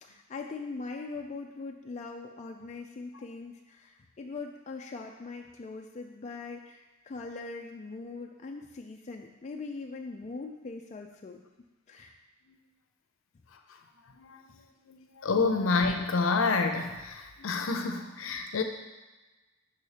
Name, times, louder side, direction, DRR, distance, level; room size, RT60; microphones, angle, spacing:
voice 1, 0.0-11.4 11.9-12.1, left 3 dB, 35° left, 2 dB, 0.3 m, -41 dB
voice 2, 14.1-18.6, left 4 dB, 70° left, 5 dB, 0.6 m, -29 dB
5.4 x 4.1 x 4.9 m, 1.2 s
head